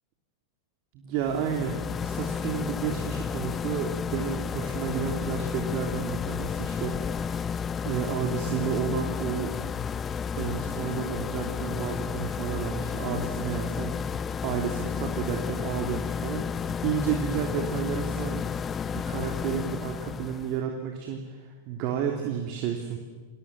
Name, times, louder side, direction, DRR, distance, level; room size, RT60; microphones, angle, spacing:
voice 1, 0.9-9.5 10.4-14.0 14.4-18.5 18.9-23.0, right 7 dB, 45° right, 2 dB, 3.2 m, -31 dB
sound 1, 1.2-20.6, left 6 dB, 25° left, 0.7 m, -32 dB
29.5 x 21.0 x 7.6 m, 1.4 s
figure-of-eight pair, 90°, 0 cm